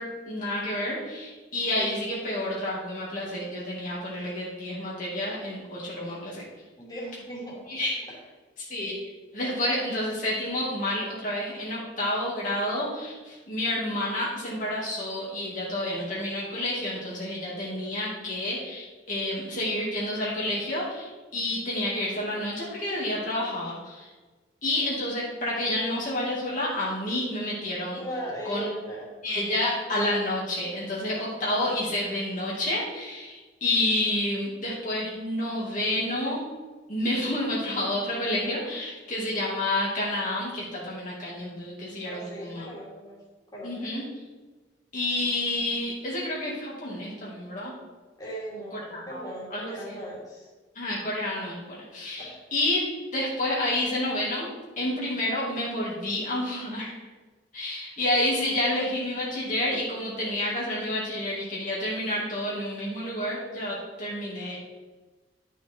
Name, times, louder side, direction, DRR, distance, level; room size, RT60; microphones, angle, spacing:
voice 1, 0.0-6.4 7.7-7.9 8.7-9.0 9.3-24.1 24.6-28.0 28.4-28.7 29.2-36.4 36.9-42.7 43.6-44.0 44.9-47.7 48.9-49.2 49.5-49.9 50.7-52.8 53.1-56.9 57.5-64.6, left 1 dB, 45° left, -6 dB, 2.2 m, -29 dB
voice 2, 6.8-7.8 8.1-8.2 27.9-29.1 42.1-43.2 43.5-43.8 48.2-50.5 52.2-52.4, right 1 dB, 20° left, -5 dB, 2.7 m, -38 dB
11.5 x 5.9 x 4.5 m, 1.3 s
head